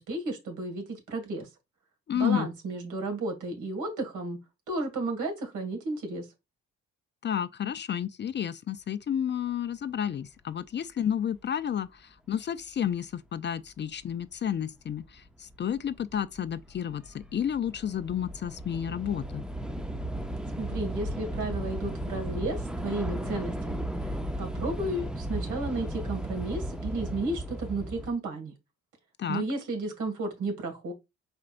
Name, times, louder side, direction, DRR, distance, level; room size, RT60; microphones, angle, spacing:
voice 1, 0.0-1.5 2.1-4.4 4.7-6.3 20.6-28.5 29.3-30.9, right 2 dB, 75° right, 2.2 m, -33 dB
voice 2, 2.1-2.5 7.2-12.0 12.3-19.4 29.2-29.4, left 9 dB, 35° left, 0.4 m, -31 dB
Train / Subway metro underground, 14.1-14.2 15.0-15.3 15.5-28.1, right 1 dB, 5° right, 0.7 m, -35 dB
4.9 x 4.3 x 2.5 m
cardioid pair, 90°, 30 cm